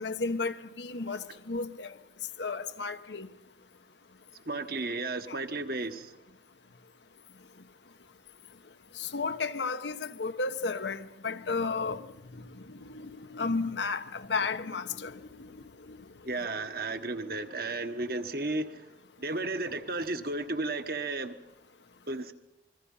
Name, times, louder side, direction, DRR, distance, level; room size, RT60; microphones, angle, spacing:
voice 1, 0.0-1.9 2.4-3.3 5.3-5.4 9.0-12.1 12.7-15.5 15.9-16.0, left 4 dB, 75° left, 1.1 m, -33 dB
voice 2, 4.4-6.2 16.2-18.8 19.2-21.4 22.1-22.3, right 2 dB, 55° right, 1.5 m, -33 dB
28.5 x 22.0 x 5.6 m
head